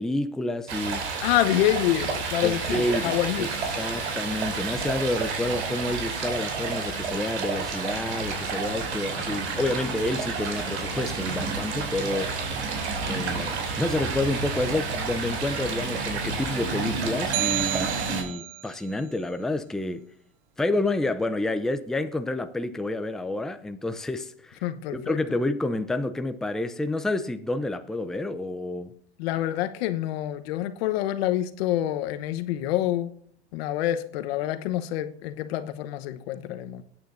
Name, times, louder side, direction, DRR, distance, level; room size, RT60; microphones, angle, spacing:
voice 1, 0.0-1.1 2.4-3.5 3.8-12.4 13.1-20.1 20.6-24.6 24.9-28.9, left 2 dB, ahead, 0.5 m, -29 dB
Stream, 0.7-18.2, right 4 dB, 80° right, 3.0 m, -30 dB
voice 2, 1.2-3.5 24.6-25.2 29.2-33.1 33.5-36.8, left 13 dB, 65° left, 1.1 m, -27 dB
sound 1, 17.3-18.7, right 17 dB, 55° right, 0.5 m, -30 dB
21.5 x 9.0 x 2.7 m
hypercardioid pair, 115°, 33 cm